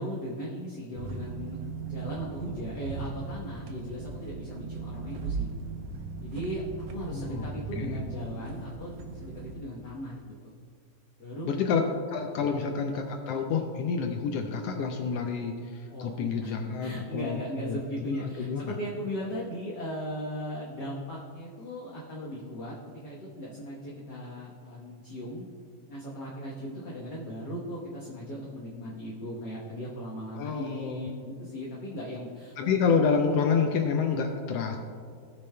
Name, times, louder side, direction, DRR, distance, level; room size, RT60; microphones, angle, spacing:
voice 1, 0.0-5.5 6.2-10.5 11.2-11.5 11.8-12.0 12.4-12.6 15.9-16.5 16.8-25.5 25.9-32.6, equal, 55° left, -5 dB, 1.2 m, -38 dB
sound 1, 1.0-9.6, right 4 dB, 70° right, 1.7 m, -38 dB
voice 2, 7.1-8.0 11.4-18.8 30.3-31.1 32.6-34.8, left 5 dB, 80° left, 4 dB, 1.4 m, -29 dB
18.0 x 6.9 x 2.2 m, 2.1 s
omnidirectional pair, 3.3 m